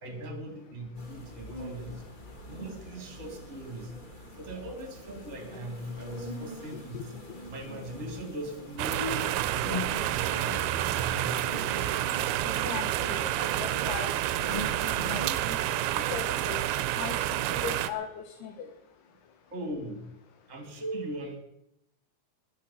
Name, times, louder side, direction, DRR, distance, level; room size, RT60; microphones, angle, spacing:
voice 1, 0.0-2.0 2.4-3.9 4.4-7.1 7.5-11.8 19.5-20.0 20.5-21.4, equal, 20° right, 4 dB, 2.6 m, -39 dB
sound 1, 0.9-15.9, left 1 dB, 25° left, 1.1 m, -43 dB
voice 2, 6.7-7.1 12.6-14.5 14.8-15.6 15.9-16.6 17.0-18.7, left 7 dB, 80° left, 5 dB, 3.1 m, -39 dB
sound 2, 8.8-17.9, right 13 dB, 80° right, 2.6 m, -29 dB
22.0 x 8.6 x 5.8 m, 0.76 s
omnidirectional pair, 4.6 m